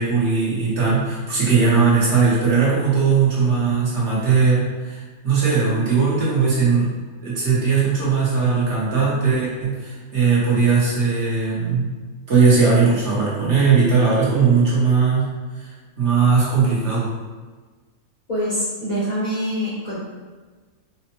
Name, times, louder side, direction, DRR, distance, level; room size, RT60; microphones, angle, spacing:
voice 1, 0.0-6.9 7.2-11.9 12.3-15.3 15.6-17.1, right 5 dB, 55° right, -7 dB, 1.0 m, -19 dB
voice 2, 18.3-20.0, equal, 40° left, -9 dB, 0.8 m, -24 dB
4.2 x 2.0 x 2.8 m, 1.4 s
omnidirectional pair, 1.5 m